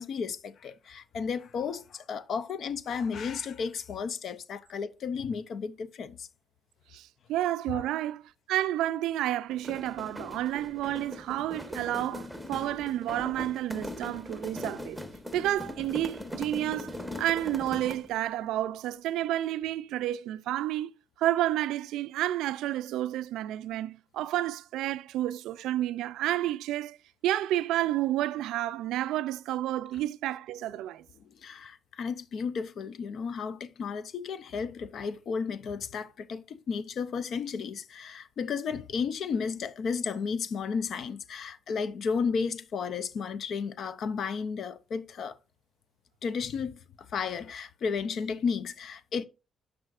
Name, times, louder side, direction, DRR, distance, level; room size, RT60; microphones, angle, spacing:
voice 1, 0.0-6.3 7.7-7.9 31.2-45.4 46.2-49.3, left 5 dB, 60° left, 0.5 m, -33 dB
voice 2, 6.9-15.0 15.3-20.9 21.2-27.0 27.2-31.1, right 13 dB, 90° right, 0.3 m, -30 dB
sound 1, 9.5-18.2, left 1 dB, ahead, 1.1 m, -40 dB
12.0 x 4.8 x 2.4 m
cardioid pair, 90°, 0 cm